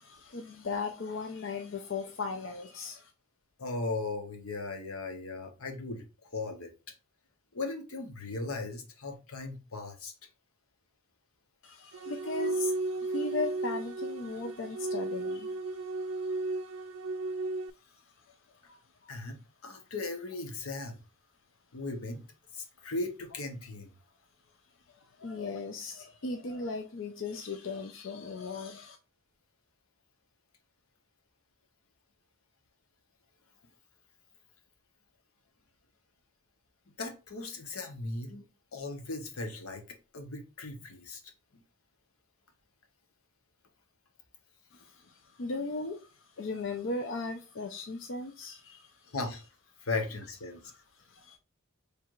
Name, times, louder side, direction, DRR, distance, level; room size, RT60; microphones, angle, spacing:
voice 1, 0.0-3.1 11.6-19.1 24.9-29.0 44.7-49.1 50.6-51.4, left 3 dB, 60° left, 0.5 m, -38 dB
voice 2, 3.6-6.0 6.3-6.7 7.5-10.1 19.1-19.4 19.6-21.0 21.7-22.2 22.5-23.9 37.0-38.4 38.7-41.2 49.1-49.4 49.8-50.6, left 3 dB, 85° left, 1.0 m, -37 dB
sound 1, 11.9-17.7, right 2 dB, 75° right, 0.4 m, -34 dB
4.6 x 3.4 x 2.4 m
head